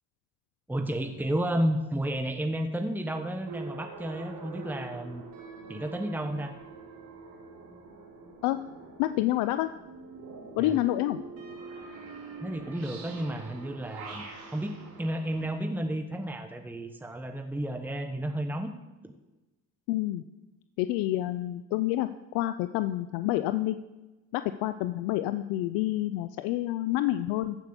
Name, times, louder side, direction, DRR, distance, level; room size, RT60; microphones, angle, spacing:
voice 1, 0.7-5.2 5.7-6.5 10.6-10.8 12.4-14.3 14.5-18.7 19.0-19.1, right 1 dB, 5° right, 6 dB, 1.2 m, -32 dB
sound 1, 3.4-15.5, right 4 dB, 75° right, 3.6 m, -45 dB
voice 2, 9.0-9.7 10.6-11.2 19.9-20.2 20.8-23.8 24.3-27.6, left 15 dB, 90° left, 12 dB, 0.6 m, -28 dB
14.5 x 6.1 x 7.1 m, 1.1 s
supercardioid pair, 80°, 34 cm